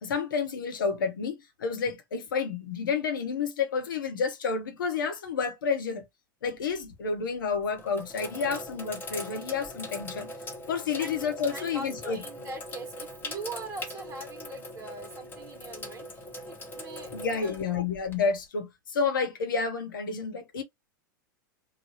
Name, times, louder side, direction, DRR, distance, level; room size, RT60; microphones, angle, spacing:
voice 1, 0.0-6.0 6.4-10.3 10.7-12.2 17.1-20.6, left 5 dB, 75° left, 0.9 m, -30 dB
Sink (filling or washing), 6.5-6.9 7.5-18.5, left 1 dB, 20° left, 1.0 m, -41 dB
voice 2, 11.5-17.1 17.4-17.6, right 2 dB, 25° right, 0.9 m, -42 dB
3.3 x 2.2 x 2.8 m
figure-of-eight pair, 90°, 11 cm